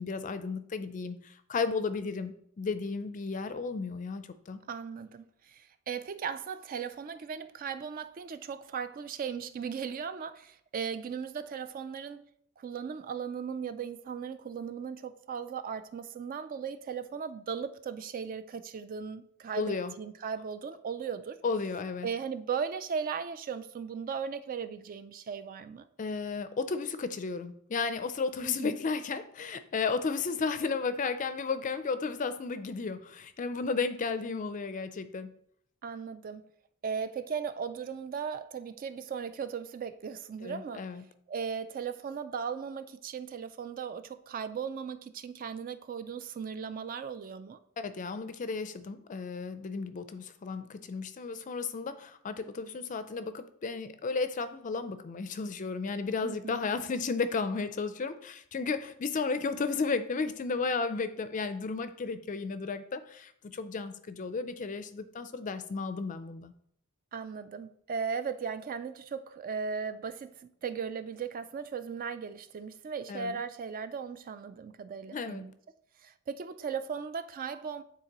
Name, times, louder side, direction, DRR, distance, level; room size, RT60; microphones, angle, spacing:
voice 1, 0.0-4.6 19.5-19.9 21.4-22.1 26.0-35.3 40.4-41.0 47.8-66.5 73.1-73.4 75.1-75.4, left 4 dB, 35° left, 0.4 m, -33 dB
voice 2, 4.7-12.2 12.6-21.4 22.0-25.9 28.4-28.8 35.8-36.4 36.8-40.8 41.3-47.6 56.2-56.6 67.1-75.5 76.0-77.8, right 6 dB, 40° right, 0.3 m, -37 dB
9.2 x 3.9 x 2.9 m
head